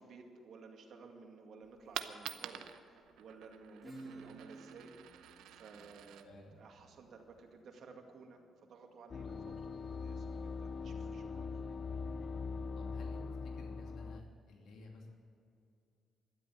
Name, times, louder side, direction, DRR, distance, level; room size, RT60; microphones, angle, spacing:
voice 1, 0.0-2.7 2.9-5.0 5.5-11.6, right 4 dB, 65° right, 2 dB, 2.2 m, -55 dB
Coin (dropping), 1.6-7.6, right 11 dB, 90° right, 0.7 m, -49 dB
Acoustic guitar / Strum, 3.8-9.2, right 2 dB, ahead, 4.3 m, -55 dB
voice 2, 6.2-6.6 12.8-13.2 13.5-15.1, left 3 dB, 75° left, 1 dB, 2.8 m, -54 dB
sound 1, 9.1-14.2, left 4 dB, 45° left, 0.5 m, -42 dB
12.5 x 10.5 x 9.2 m, 2.5 s
cardioid pair, 90°, 0 cm